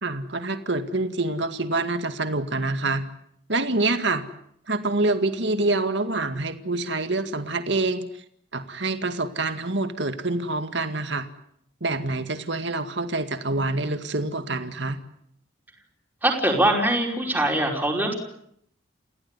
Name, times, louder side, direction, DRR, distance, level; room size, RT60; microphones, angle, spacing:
voice 1, 0.0-3.1 3.5-4.3 4.7-8.2 8.5-11.3 11.8-15.0, right 2 dB, 65° right, 8 dB, 2.1 m, -26 dB
voice 2, 16.2-18.1, right 1 dB, 10° right, 0 dB, 5.2 m, -22 dB
29.5 x 17.0 x 9.9 m, 0.72 s
head